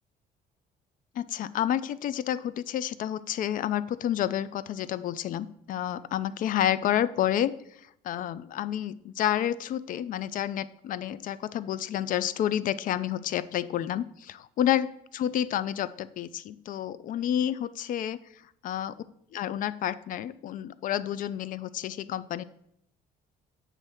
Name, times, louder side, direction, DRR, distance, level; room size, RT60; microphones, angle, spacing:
voice 1, 1.2-7.5 8.0-18.2 18.6-18.9 19.3-22.4, left 11 dB, 55° left, 16 dB, 0.4 m, -29 dB
7.5 x 3.2 x 6.3 m, 0.73 s
cardioid pair, 110°, 17 cm